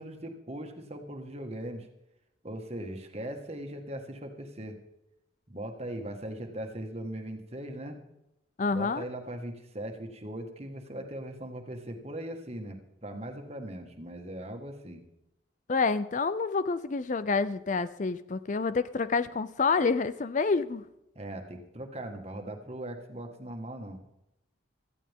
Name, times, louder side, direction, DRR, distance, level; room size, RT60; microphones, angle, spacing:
voice 1, 0.0-1.9 2.4-4.8 5.5-8.0 8.7-15.0 21.1-24.0, right 1 dB, 30° right, 4 dB, 1.7 m, -39 dB
voice 2, 8.6-9.0 15.7-20.8, left 4 dB, 40° left, 14 dB, 0.4 m, -28 dB
17.5 x 14.0 x 3.6 m, 0.88 s
head